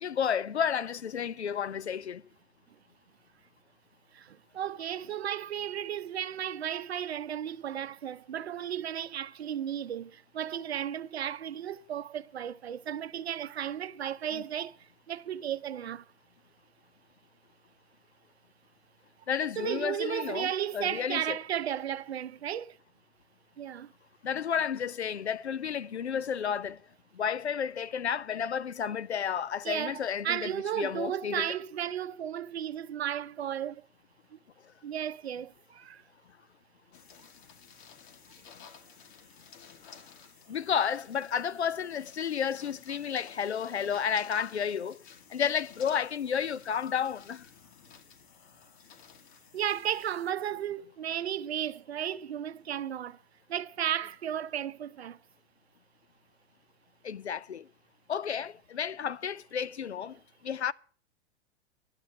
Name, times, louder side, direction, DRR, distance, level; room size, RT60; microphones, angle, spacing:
voice 1, 0.0-2.2 14.3-14.4 19.3-21.4 24.2-26.8 27.1-31.5 39.8-40.0 40.5-45.0 45.3-47.5 57.0-57.7 58.1-60.7, left 7 dB, 85° left, 0.6 m, -32 dB
voice 2, 4.1-16.0 19.6-22.8 23.6-23.9 29.6-33.8 34.3-34.4 34.8-36.0 49.5-53.2 53.5-55.2, right 10 dB, 75° right, 0.7 m, -34 dB
sound 1, 36.9-50.3, left 7 dB, 50° left, 1.7 m, -54 dB
11.5 x 7.7 x 8.3 m
figure-of-eight pair, 95°, 32 cm